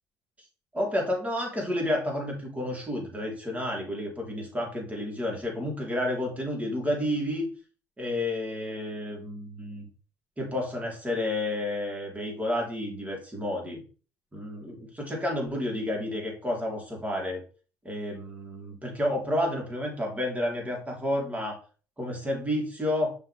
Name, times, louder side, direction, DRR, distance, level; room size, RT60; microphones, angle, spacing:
voice 1, 0.7-7.5 8.0-9.9 10.4-13.8 14.3-17.4 17.8-21.6 22.0-23.1, left 1 dB, 15° right, -1 dB, 3.9 m, -30 dB
6.7 x 5.8 x 3.5 m, 0.37 s
hypercardioid pair, 60°, 8 cm